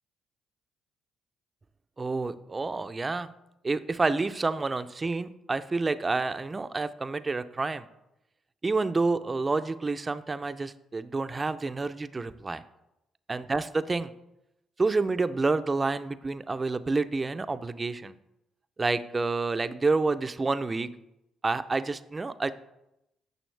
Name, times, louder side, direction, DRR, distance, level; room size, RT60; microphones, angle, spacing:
voice 1, 2.0-3.3 3.6-7.9 8.6-12.6 13.3-14.1 14.8-18.1 18.8-20.9 21.4-22.5, right 3 dB, 25° right, 12 dB, 0.5 m, -28 dB
9.2 x 6.2 x 3.3 m, 0.87 s
supercardioid pair, 75°, 0 cm